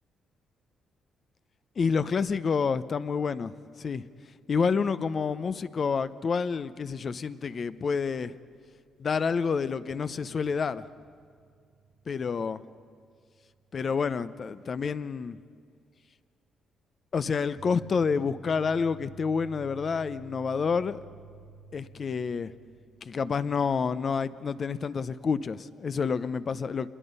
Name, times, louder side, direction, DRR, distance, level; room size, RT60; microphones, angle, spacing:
voice 1, 1.8-4.1 4.5-8.3 9.0-10.8 12.1-12.6 13.7-15.4 17.1-21.1 21.7-22.5 23.0-26.9, left 5 dB, 45° left, 14 dB, 0.7 m, -28 dB
sound 1, 8.6-9.1 9.4-9.5 9.9-14.3 17.4-24.4, right 5 dB, 70° right, 0.9 m, -53 dB
26.5 x 21.0 x 5.5 m, 2.2 s
cardioid pair, 90°, 0 cm